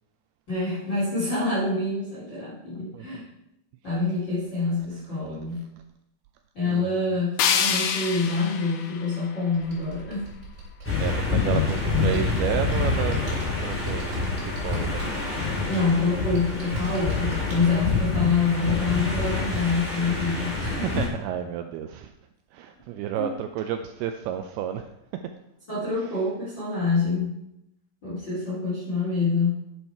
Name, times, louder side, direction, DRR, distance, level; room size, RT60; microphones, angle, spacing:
voice 1, 0.5-3.3 3.8-5.6 6.5-10.2 15.7-21.1 23.2-23.3 25.7-27.3 28.0-29.6, left 3 dB, 30° left, -9 dB, 2.9 m, -26 dB
voice 2, 2.9-3.3 6.7-7.2 11.0-13.3 13.6-15.2 20.6-22.1 22.5-24.9, right 9 dB, 85° right, 7 dB, 2.2 m, -31 dB
sound 1, 7.4-10.4, left 7 dB, 75° left, 2.4 m, -28 dB
Computer keyboard, 9.5-17.7, right 1 dB, 60° right, 4.3 m, -42 dB
sound 2, 10.8-21.1, left 3 dB, 5° left, 1.4 m, -27 dB
9.1 x 7.0 x 4.6 m, 0.84 s
omnidirectional pair, 5.0 m